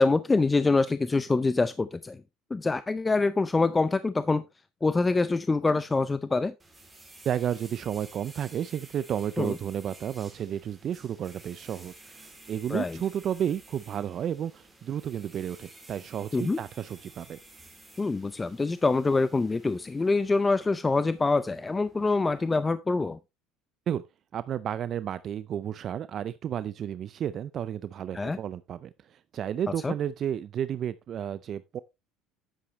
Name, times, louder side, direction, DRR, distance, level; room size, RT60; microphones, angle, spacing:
voice 1, 0.0-2.2 2.5-4.4 4.8-6.5 9.4-9.5 12.7-13.0 16.3-16.6 18.0-23.2 28.1-28.4 29.8-29.9, left 3 dB, 20° left, 0.5 m, -25 dB
sound 1, 6.6-22.6, right 2 dB, 10° right, 3.0 m, -53 dB
voice 2, 7.2-17.4 23.9-24.0 24.3-31.8, right 9 dB, 50° right, 0.5 m, -32 dB
10.0 x 7.7 x 3.1 m
supercardioid pair, 85°, 0 cm